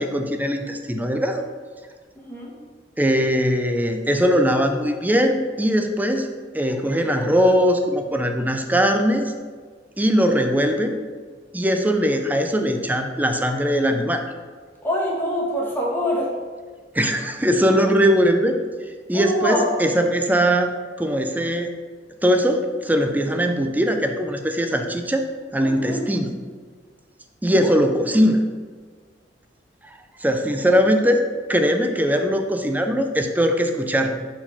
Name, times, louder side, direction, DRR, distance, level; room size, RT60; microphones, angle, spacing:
voice 1, 0.0-1.4 3.0-6.3 6.5-9.3 10.0-11.0 11.5-14.2 16.9-18.5 19.1-20.7 21.0-21.7 22.2-25.2 25.5-26.3 27.4-28.4 30.2-31.2 31.5-34.2, equal, 10° right, 5 dB, 0.5 m, -20 dB
voice 2, 14.8-16.3 19.1-19.7 25.6-26.0 27.5-27.7, left 1 dB, 10° left, -4 dB, 1.3 m, -24 dB
4.5 x 4.2 x 5.6 m, 1.5 s
head